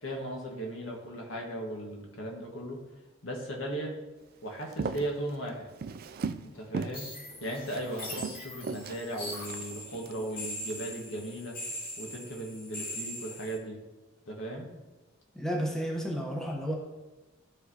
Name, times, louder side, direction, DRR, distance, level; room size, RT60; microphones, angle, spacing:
voice 1, 0.0-2.8 3.2-3.9 4.4-5.7 6.4-7.1 7.4-11.6 12.0-13.8 14.3-14.7, right 1 dB, 75° left, 0 dB, 1.6 m, -37 dB
Walk footsteps, 4.6-6.5 6.7-7.0 7.4-10.1 10.6-10.9, right 4 dB, 50° right, 0.4 m, -37 dB
sound 1, 6.9-13.6, left 1 dB, 50° left, 2.0 m, -41 dB
voice 2, 15.3-16.7, equal, 5° left, -1 dB, 1.0 m, -32 dB
13.5 x 4.6 x 2.9 m, 1.1 s
head